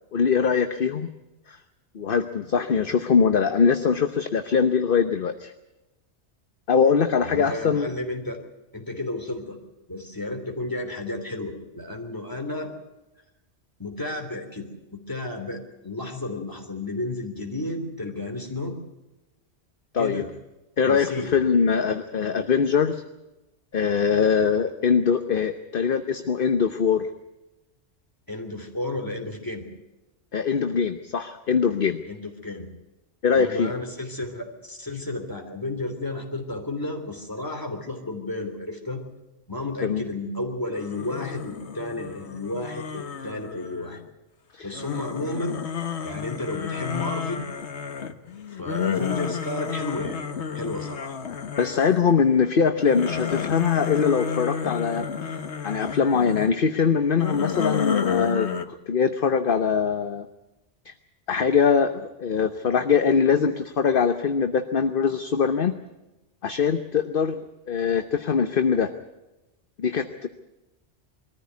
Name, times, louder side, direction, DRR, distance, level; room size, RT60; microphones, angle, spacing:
voice 1, 0.1-1.1 1.5-1.6 1.9-5.5 6.7-7.9 19.9-20.2 20.8-23.0 23.7-27.1 30.3-32.0 33.2-33.7 39.8-40.0 44.5-44.7 51.6-55.1 55.6-58.5 58.9-60.3 60.9-61.0 61.3-65.7 66.4-67.4 67.7-68.9 69.8-70.3, left 6 dB, 50° left, 8 dB, 1.1 m, -22 dB
voice 2, 7.2-8.4 8.7-9.6 9.9-12.7 13.8-18.8 20.0-20.3 20.8-21.4 28.3-29.7 32.1-32.7 33.3-39.0 39.5-44.0 44.6-45.6 46.0-47.5 48.6-50.2 50.5-51.2, left 2 dB, 15° left, 4 dB, 3.2 m, -32 dB
sound 1, 40.7-44.1 44.7-52.2 52.6-56.5 57.1-58.7, left 7 dB, 70° left, 1.5 m, -31 dB
22.5 x 14.5 x 9.5 m, 1.0 s
omnidirectional pair, 1.2 m